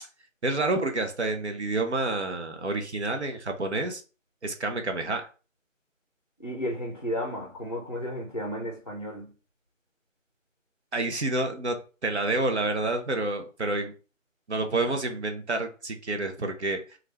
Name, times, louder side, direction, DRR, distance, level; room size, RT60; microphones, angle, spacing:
voice 1, 0.4-4.0 4.4-5.3 10.9-11.8 12.0-13.9 14.5-17.0, right 2 dB, 60° right, 0.6 m, -28 dB
voice 2, 6.4-9.3, equal, 30° left, 0.5 m, -33 dB
3.1 x 2.4 x 3.2 m
figure-of-eight pair, 170°, 39 cm